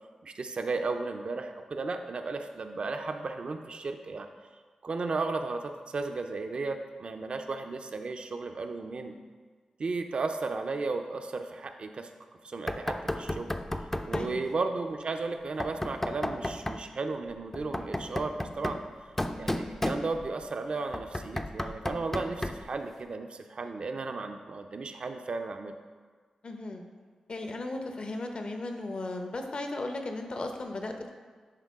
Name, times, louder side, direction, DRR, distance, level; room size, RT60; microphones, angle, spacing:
voice 1, 0.2-4.3 4.8-9.2 9.8-12.1 12.4-13.5 14.1-18.8 19.4-25.7, right 3 dB, 60° right, 6 dB, 0.5 m, -34 dB
Knock, 12.7-14.4 15.6-16.9 17.5-20.4 20.9-22.7, left 1 dB, 15° left, 0.4 m, -34 dB
voice 2, 14.1-14.4 26.4-26.8 27.3-31.1, left 2 dB, 55° left, 4 dB, 0.8 m, -36 dB
10.5 x 3.7 x 3.6 m, 1.5 s
cardioid pair, 55°, 2 cm